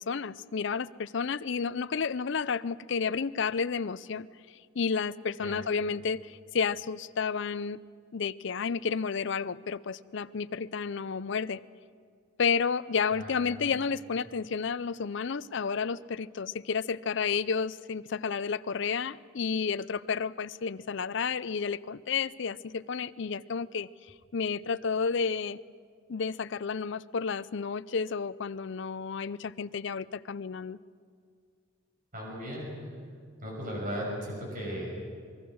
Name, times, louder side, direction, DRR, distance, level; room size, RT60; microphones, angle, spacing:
voice 1, 0.0-4.3 4.8-7.8 8.1-11.6 12.4-23.9 24.3-25.6 26.1-30.8, left 5 dB, 60° left, 16 dB, 0.5 m, -31 dB
voice 2, 13.1-13.8 32.1-32.9 33.4-35.1, equal, 40° right, -2 dB, 6.2 m, -37 dB
25.0 x 22.0 x 6.3 m, 2.1 s
head